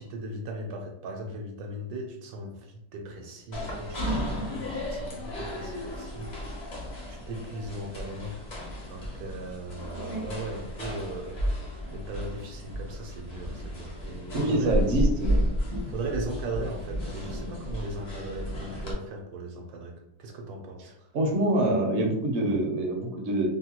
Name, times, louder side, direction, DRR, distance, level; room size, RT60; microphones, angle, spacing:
voice 1, 0.0-6.8 7.1-8.5 8.9-14.8 15.9-20.9, right 1 dB, 75° right, 2 dB, 1.1 m, -38 dB
sound 1, 3.5-18.9, equal, 45° left, 0.6 m, -33 dB
voice 2, 14.3-15.4 21.1-23.5, right 1 dB, 60° right, 0 dB, 0.8 m, -25 dB
2.8 x 2.2 x 2.9 m, 0.77 s
omnidirectional pair, 1.7 m